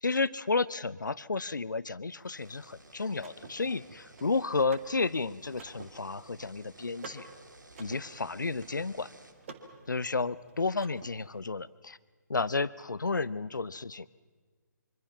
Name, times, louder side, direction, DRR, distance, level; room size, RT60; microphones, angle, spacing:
voice 1, 0.0-7.3 7.8-9.1 9.9-12.0 12.3-14.1, left 4 dB, 75° left, 18 dB, 0.7 m, -32 dB
sound 1, 2.2-9.3, right 2 dB, 75° right, 2.4 m, -56 dB
Car / Mechanisms, 2.5-11.4, right 4 dB, 40° right, 2.3 m, -52 dB
25.5 x 24.0 x 5.9 m, 1.5 s
figure-of-eight pair, 140°, 10 cm